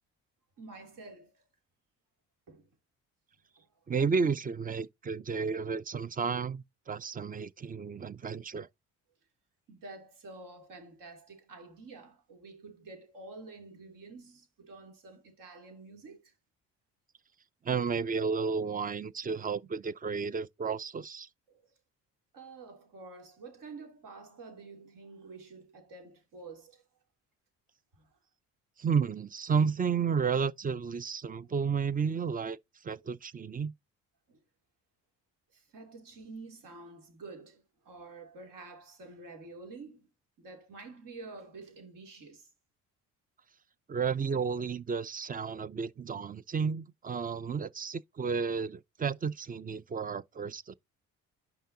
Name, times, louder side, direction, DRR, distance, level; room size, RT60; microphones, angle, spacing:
voice 1, 0.6-1.3 2.5-2.7 3.6-3.7 9.7-16.3 21.5-21.7 22.3-26.8 27.9-28.1 31.4-31.5 34.3-34.4 35.5-40.1 40.4-42.5, right 3 dB, 70° right, 2.9 m, -49 dB
voice 2, 3.9-8.7 17.6-21.3 28.8-32.6 32.8-33.7 43.9-50.7, right 5 dB, 25° right, 0.5 m, -32 dB
10.0 x 5.7 x 2.7 m
supercardioid pair, 70°, 34 cm